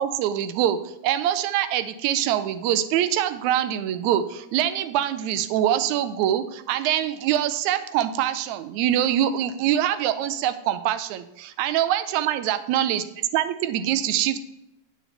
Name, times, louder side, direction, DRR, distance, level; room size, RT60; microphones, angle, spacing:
voice 1, 0.0-13.0 13.3-14.4, right 11 dB, 80° right, 11 dB, 1.9 m, -24 dB
10.5 x 7.9 x 3.3 m, 0.87 s
omnidirectional pair, 3.5 m